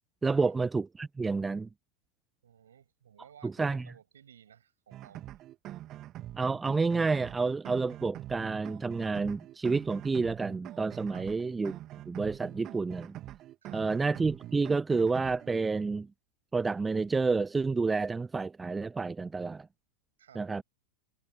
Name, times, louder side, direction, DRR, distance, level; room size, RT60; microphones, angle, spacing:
voice 1, 0.2-1.7 3.4-3.9 6.3-11.8 12.1-13.2 13.7-16.1 16.5-19.7 20.4-20.6, right 4 dB, 10° right, 0.5 m, -29 dB
voice 2, 2.4-5.3 11.1-11.3 13.6-13.9 20.2-20.4, right 9 dB, 65° right, 6.8 m, -56 dB
sound 1, 4.9-15.6, right 14 dB, 35° right, 2.8 m, -45 dB
figure-of-eight pair, 90°, 0 cm